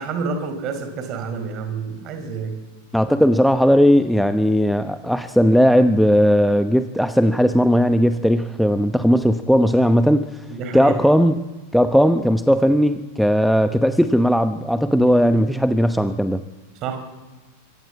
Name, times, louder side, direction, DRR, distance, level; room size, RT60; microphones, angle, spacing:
voice 1, 0.0-2.6 10.5-10.9 14.8-15.2 16.8-17.0, right 4 dB, 35° right, 8 dB, 4.5 m, -28 dB
voice 2, 2.9-10.4 10.7-11.4 11.7-16.4, equal, ahead, 10 dB, 0.9 m, -17 dB
25.0 x 24.0 x 7.7 m, 1.2 s
figure-of-eight pair, 90°, 0 cm